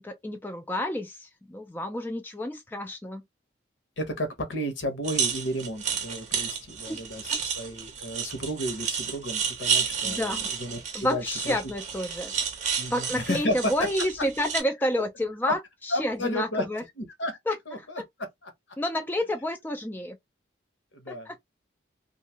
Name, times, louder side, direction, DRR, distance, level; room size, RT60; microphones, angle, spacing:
voice 1, 0.0-3.2 6.9-7.0 7.3-7.4 10.0-10.5 10.9-12.3 12.9-16.8 17.5-17.6 18.0-18.1 18.8-20.2 21.1-21.4, left 1 dB, 10° left, 0.3 m, -30 dB
voice 2, 4.0-11.6 12.8-13.9 15.5-15.6 15.9-16.6 17.0-17.4 17.7-18.5 20.9-21.4, left 1 dB, 70° left, 0.9 m, -32 dB
sound 1, 5.0-14.6, right 7 dB, 35° right, 0.6 m, -31 dB
2.6 x 2.3 x 2.8 m
head